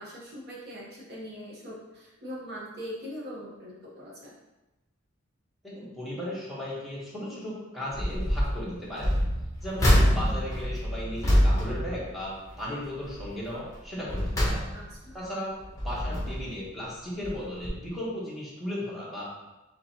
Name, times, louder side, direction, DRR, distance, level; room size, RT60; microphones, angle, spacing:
voice 1, 0.0-4.4 14.7-15.2, equal, 55° right, -4 dB, 1.2 m, -41 dB
voice 2, 5.6-9.1 9.6-14.6 15.1-19.2, equal, ahead, -7 dB, 1.3 m, -36 dB
sound 1, 7.9-8.5 9.0-12.6 13.0-13.3 13.8-15.1 15.6-16.6 17.2-17.4 17.6-17.7, equal, 15° left, 1.2 m, -26 dB
5.0 x 3.2 x 2.9 m, 1.0 s
head